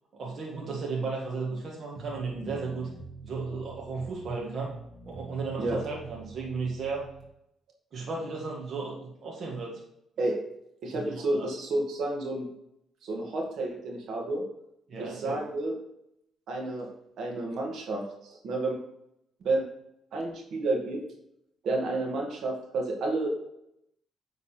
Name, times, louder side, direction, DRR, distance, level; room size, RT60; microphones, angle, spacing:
voice 1, 0.1-2.9 3.2-4.8 5.1-7.1 7.9-9.8 10.9-11.5 14.9-15.4, right 4 dB, 55° right, -3 dB, 1.7 m, -34 dB
sound 1, 1.9-7.3, right 3 dB, 20° right, 2.1 m, -46 dB
voice 2, 10.8-12.5 13.0-14.4 15.0-15.7 16.5-16.9 17.2-18.8 19.4-19.6 20.1-21.0 21.6-23.3, right 2 dB, 70° right, 0 dB, 1.9 m, -30 dB
8.8 x 4.0 x 4.4 m, 0.78 s
cardioid pair, 90°, 0 cm